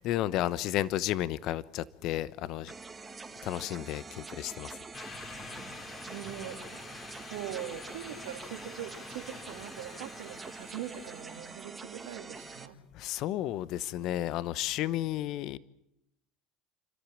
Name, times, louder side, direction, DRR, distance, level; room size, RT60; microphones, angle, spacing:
voice 1, 0.0-2.7 3.4-4.8 12.9-15.6, left 13 dB, 60° left, 0.9 m, -32 dB
sound 1, 2.7-12.7, right 4 dB, 20° right, 1.8 m, -46 dB
sound 2, 4.9-11.7, left 5 dB, 40° left, 3.6 m, -48 dB
voice 2, 6.1-6.9 7.3-12.8, right 11 dB, 80° right, 2.8 m, -42 dB
28.5 x 13.0 x 8.9 m
hypercardioid pair, 85°, 0 cm